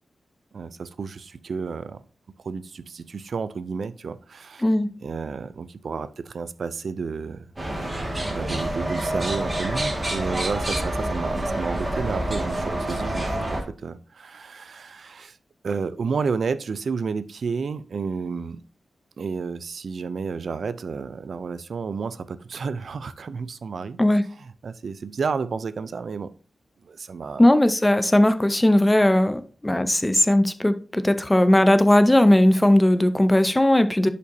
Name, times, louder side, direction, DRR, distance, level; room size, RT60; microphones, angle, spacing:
voice 1, 0.5-2.0 2.4-4.6 5.0-7.5 8.3-15.4 15.6-18.6 19.2-24.0 24.4-26.3 26.8-27.5, right 5 dB, 65° right, 0.5 m, -31 dB
sound 1, 7.6-13.6, right 1 dB, 20° right, 1.9 m, -27 dB
voice 2, 27.4-34.1, left 1 dB, 10° left, 0.6 m, -18 dB
10.5 x 5.2 x 2.7 m
wide cardioid pair, 125°, 0 cm